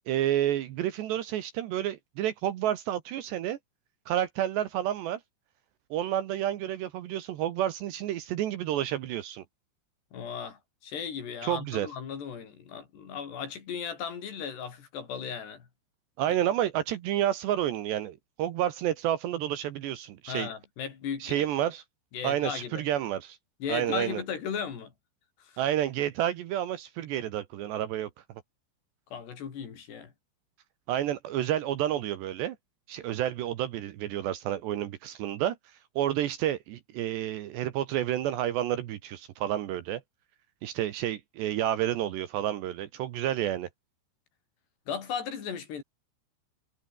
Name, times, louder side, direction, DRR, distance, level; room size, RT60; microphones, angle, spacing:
voice 1, 0.1-3.6 4.1-5.2 5.9-9.4 11.4-11.9 16.2-20.5 21.2-21.8 22.2-23.4 23.7-24.2 25.6-28.1 30.9-32.6 32.9-35.6 36.0-40.0 40.6-43.7, right 12 dB, 70° right, 3.1 m, -30 dB
voice 2, 10.1-15.7 16.3-16.4 20.3-21.5 22.1-22.8 23.6-24.9 25.4-25.6 29.1-30.1 44.9-45.8, left 7 dB, 55° left, 5.5 m, -36 dB
omnidirectional pair, 5.8 m